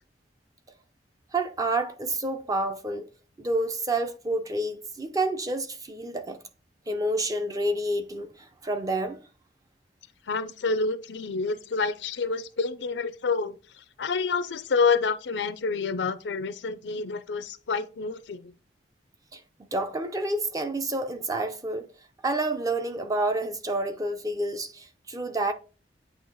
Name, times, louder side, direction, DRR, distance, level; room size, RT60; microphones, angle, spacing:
voice 1, 1.3-3.1 3.4-6.4 6.9-9.2 19.3-21.9 22.2-25.5, right 2 dB, 20° right, 0.6 m, -29 dB
voice 2, 10.3-18.5, left 4 dB, 80° left, 0.5 m, -28 dB
8.6 x 2.9 x 4.0 m
head